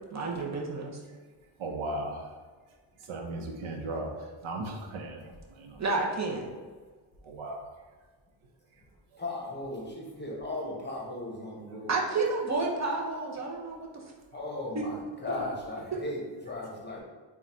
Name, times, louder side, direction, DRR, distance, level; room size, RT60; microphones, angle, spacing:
voice 1, 0.1-1.0 5.8-6.4 11.9-14.0 14.7-14.9 15.9-16.0, right 3 dB, 35° right, -1 dB, 0.7 m, -30 dB
voice 2, 1.6-2.3 3.1-4.1 4.4-5.8 7.3-7.7, right 2 dB, 75° right, 1 dB, 0.8 m, -36 dB
voice 3, 9.2-12.0 14.3-17.0, left 2 dB, 20° left, -3 dB, 0.9 m, -37 dB
3.8 x 2.4 x 4.2 m, 1.4 s
cardioid pair, 105°, 48 cm